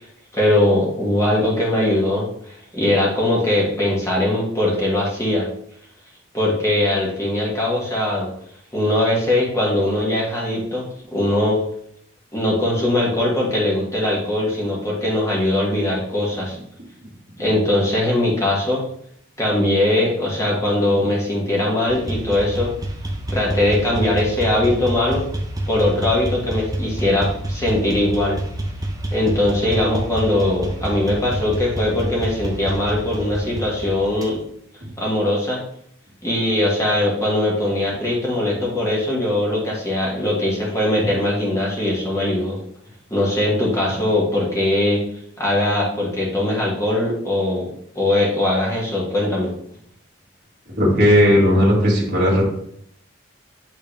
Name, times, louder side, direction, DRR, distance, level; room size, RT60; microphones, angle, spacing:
voice 1, 0.3-5.5 6.3-8.3 8.7-11.6 12.3-16.6 17.4-18.9 19.4-22.7 23.3-25.2 25.7-28.4 29.1-34.4 35.0-35.6 36.2-42.6 43.1-45.0 45.4-47.7 48.0-49.5, left 1 dB, 15° left, -4 dB, 1.8 m, -20 dB
sound 1, 21.9-34.3, right 1 dB, 20° right, 0.8 m, -27 dB
voice 2, 50.8-52.4, equal, 50° right, -5 dB, 2.0 m, -15 dB
8.6 x 3.6 x 3.3 m, 0.67 s
head